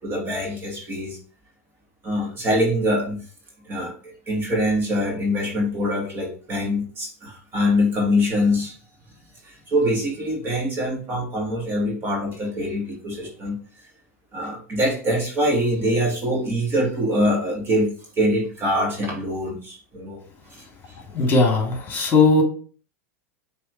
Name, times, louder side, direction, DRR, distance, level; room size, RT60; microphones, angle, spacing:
voice 1, 0.0-1.2 2.0-3.2 3.7-8.7 9.4-13.6 14.3-20.2 20.5-20.6, equal, 30° right, 0 dB, 2.4 m, -24 dB
voice 2, 21.1-22.4, left 3 dB, 25° left, 0 dB, 2.7 m, -18 dB
6.1 x 3.4 x 4.8 m, 0.41 s
hypercardioid pair, 105°, 8 cm